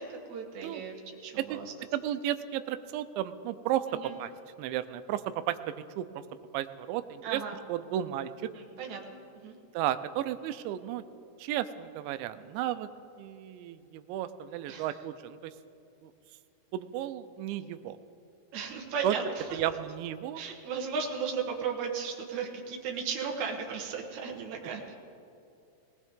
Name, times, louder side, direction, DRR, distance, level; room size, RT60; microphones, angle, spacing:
voice 1, 0.0-1.7 3.9-4.1 7.2-7.6 8.5-9.6 14.7-14.9 18.5-19.6 20.4-25.0, right 5 dB, 70° right, 0 dB, 1.8 m, -36 dB
voice 2, 1.9-3.9 4.2-4.3 4.6-6.2 6.5-7.4 7.7-8.3 9.7-11.0 11.4-12.9 13.2-15.5 16.0-16.1 16.7-18.0 19.0-19.2 19.5-20.4, right 12 dB, 85° right, 12 dB, 2.9 m, -33 dB
20.0 x 19.5 x 3.6 m, 2.6 s
omnidirectional pair, 5.3 m